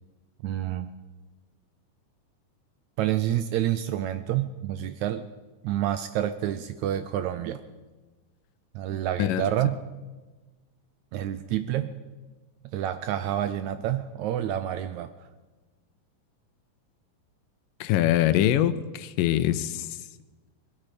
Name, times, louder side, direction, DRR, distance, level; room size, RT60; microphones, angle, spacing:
voice 1, 0.4-0.9 3.0-5.3 5.6-7.6 8.7-9.8 11.1-12.0 12.7-15.1, right 11 dB, 80° right, 10 dB, 1.7 m, -28 dB
voice 2, 17.8-19.9, left 12 dB, 85° left, 14 dB, 2.3 m, -23 dB
20.5 x 12.5 x 5.0 m, 1.2 s
omnidirectional pair, 3.8 m